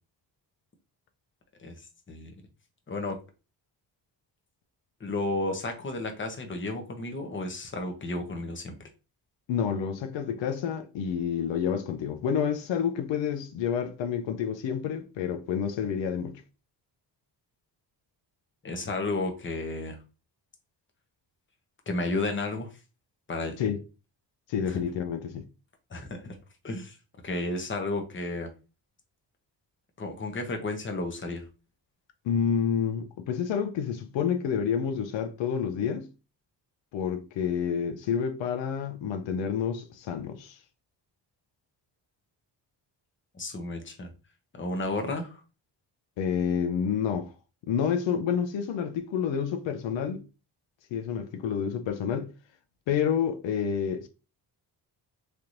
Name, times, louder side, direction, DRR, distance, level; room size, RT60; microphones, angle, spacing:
voice 1, 5.0-8.7 18.6-20.0 21.9-22.7 23.3-23.5 24.7-24.8 25.9-26.3 26.6-27.0 27.2-28.5 30.0-31.4 43.3-44.1 44.6-45.4, left 2 dB, 25° left, 0.9 m, -32 dB
voice 2, 9.5-16.4 23.6-23.8 24.5-25.4 32.2-36.1 36.9-40.6 46.2-47.3 47.7-50.2 50.9-52.3 52.9-54.1, left 7 dB, 80° left, 0.6 m, -29 dB
3.3 x 2.9 x 2.5 m
cardioid pair, 85°, 44 cm